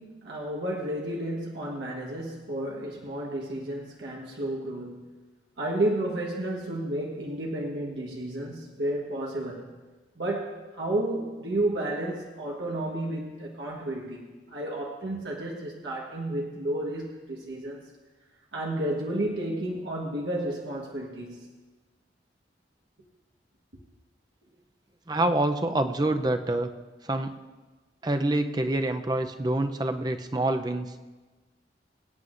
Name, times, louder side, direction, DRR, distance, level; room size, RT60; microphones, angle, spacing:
voice 1, 0.0-5.1 5.6-9.8 10.2-17.8 18.5-21.5, right 1 dB, 85° right, -2 dB, 1.4 m, -32 dB
voice 2, 25.1-26.7 27.0-27.3 28.0-30.9, right 1 dB, 25° right, 7 dB, 0.6 m, -26 dB
23.5 x 9.4 x 2.6 m, 1.3 s
head